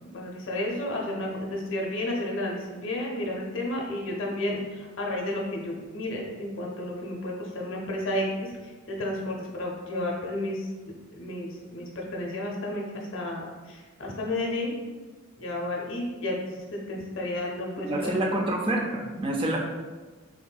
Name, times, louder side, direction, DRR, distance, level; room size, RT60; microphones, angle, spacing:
voice 1, 0.0-8.5 8.9-12.8 13.1-14.7 15.4-18.0, left 1 dB, 60° left, -1 dB, 0.6 m, -32 dB
voice 2, 17.8-19.6, right 1 dB, 25° right, 0 dB, 0.3 m, -27 dB
3.8 x 2.6 x 2.2 m, 1.3 s
head